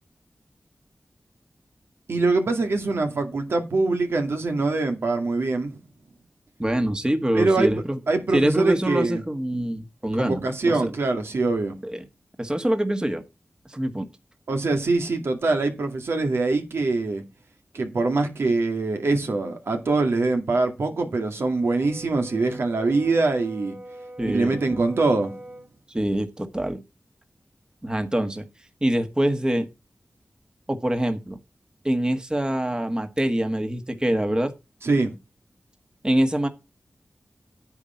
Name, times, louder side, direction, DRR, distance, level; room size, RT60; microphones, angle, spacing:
voice 1, 2.1-5.8 7.3-7.7 8.1-9.2 10.2-11.8 14.5-17.2 17.7-23.8 24.2-25.4 34.8-35.1, right 3 dB, 80° right, 2.2 m, -23 dB
voice 2, 6.6-8.0 8.3-10.9 11.8-12.0 12.4-13.2 13.7-14.1 24.2-24.8 25.9-26.8 27.8-28.4 28.8-29.6 30.7-31.4 31.8-34.5 36.0-36.5, right 1 dB, 20° right, 1.5 m, -25 dB
Brass instrument, 21.4-25.7, right 1 dB, 45° right, 2.4 m, -42 dB
9.8 x 8.0 x 4.4 m
wide cardioid pair, 80°, 4 cm